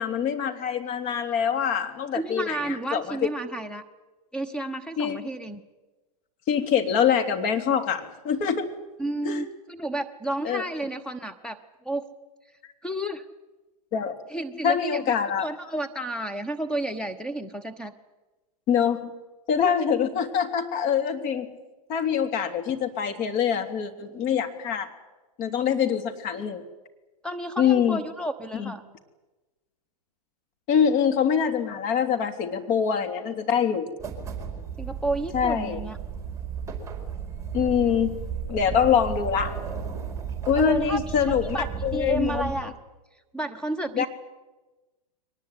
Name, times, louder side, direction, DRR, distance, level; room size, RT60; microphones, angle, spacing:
voice 1, 0.0-3.3 5.0-5.2 6.5-8.7 9.2-9.4 10.4-10.6 13.9-14.1 14.6-15.4 18.7-19.1 19.5-21.5 21.9-24.9 25.4-26.6 27.6-28.0 28.5-28.7 30.7-33.9 35.3-35.8 37.5-38.2 38.5-39.5 40.4-41.6 41.8-42.5 43.9-44.1, left 7 dB, 40° left, 6 dB, 3.1 m, -24 dB
voice 2, 2.1-3.8 4.3-5.6 9.0-12.0 12.8-13.2 14.3-15.1 15.4-17.9 19.6-19.8 27.2-28.8 34.8-36.0 40.5-41.0 41.3-42.7 43.3-44.0, right 1 dB, 5° left, 6 dB, 1.1 m, -31 dB
sound 1, 34.0-42.6, right 6 dB, 15° right, 4.7 m, -34 dB
23.0 x 19.5 x 9.6 m, 1.2 s
hypercardioid pair, 115°, 20 cm